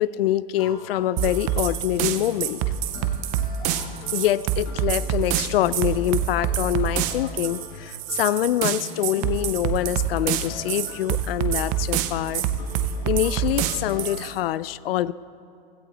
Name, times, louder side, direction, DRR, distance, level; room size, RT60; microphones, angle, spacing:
voice 1, 0.0-2.6 4.1-12.5 13.1-15.1, left 13 dB, 80° left, 18 dB, 0.5 m, -25 dB
sound 1, 0.6-14.3, left 4 dB, 30° left, 1.5 m, -44 dB
sound 2, 1.2-14.3, right 10 dB, 25° right, 0.6 m, -26 dB
16.5 x 13.5 x 4.1 m, 2.4 s
supercardioid pair, 160°, 29 cm